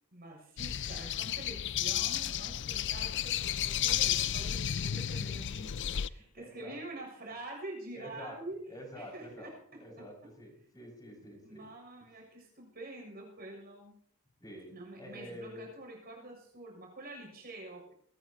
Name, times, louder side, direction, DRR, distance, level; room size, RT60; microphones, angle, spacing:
voice 1, 0.1-8.6 8.9-10.1 11.4-13.9 14.7-17.9, right 2 dB, 45° right, 1 dB, 6.9 m, -46 dB
sound 1, 0.6-6.1, left 10 dB, 55° left, 0.5 m, -32 dB
voice 2, 6.4-6.8 7.9-8.4 8.7-9.5 9.8-11.6 14.4-15.7, equal, 20° left, -2 dB, 6.1 m, -48 dB
21.5 x 19.0 x 2.9 m, 0.64 s
head